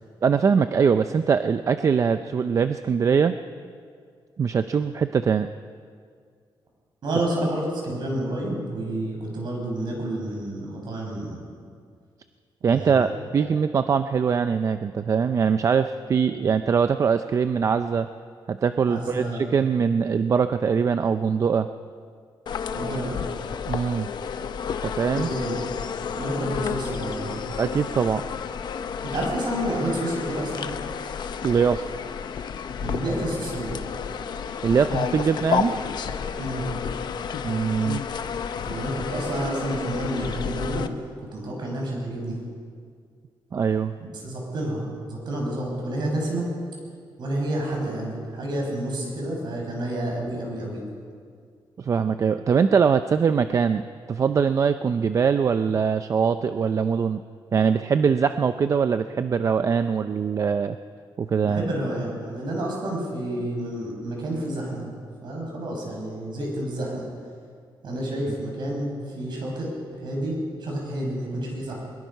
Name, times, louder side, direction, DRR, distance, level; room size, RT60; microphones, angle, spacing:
voice 1, 0.2-3.4 4.4-5.5 12.6-18.1 18.5-21.7 23.7-24.1 24.8-25.3 27.6-28.2 31.4-31.8 34.6-35.7 37.4-38.0 43.5-43.9 51.8-53.8 54.1-57.2 57.5-60.8 61.2-61.6, right 6 dB, 35° right, 10 dB, 0.5 m, -22 dB
voice 2, 7.0-11.4 12.7-13.4 18.9-19.5 22.7-23.2 25.1-25.5 26.2-27.4 29.0-30.7 32.8-33.8 36.4-36.7 38.6-40.9 41.3-42.4 44.2-46.5 47.2-50.8 61.4-64.9 65.2-67.1 67.8-71.8, right 1 dB, 55° right, -1 dB, 6.4 m, -29 dB
sound 1, 22.5-40.9, left 6 dB, 55° left, 0.8 m, -31 dB
23.0 x 21.0 x 5.6 m, 2.1 s
wide cardioid pair, 180°, 9 cm